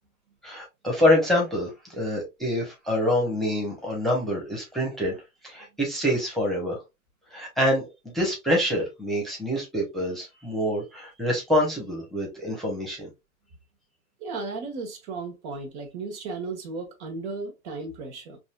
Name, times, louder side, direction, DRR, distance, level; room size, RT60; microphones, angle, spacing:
voice 1, 0.4-5.2 5.4-6.8 7.3-7.8 8.1-13.1, left 1 dB, ahead, 1.1 m, -26 dB
voice 2, 14.2-18.4, right 3 dB, 50° right, 1.3 m, -35 dB
4.0 x 2.6 x 2.3 m
hypercardioid pair, 115°, 45 cm